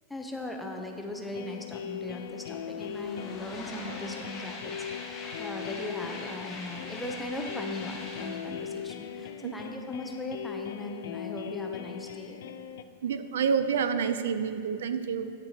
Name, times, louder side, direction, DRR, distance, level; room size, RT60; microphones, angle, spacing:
voice 1, 0.1-12.4, left 1 dB, 5° left, 2 dB, 0.6 m, -39 dB
sound 1, 1.3-12.8, left 9 dB, 70° left, 0.3 m, -39 dB
sound 2, 1.4-1.5 1.7-10.3, left 3 dB, 20° left, 1.1 m, -44 dB
voice 2, 13.0-15.3, right 6 dB, 85° right, 10 dB, 0.4 m, -28 dB
8.9 x 8.7 x 2.8 m, 2.3 s
supercardioid pair, 160°, 0 cm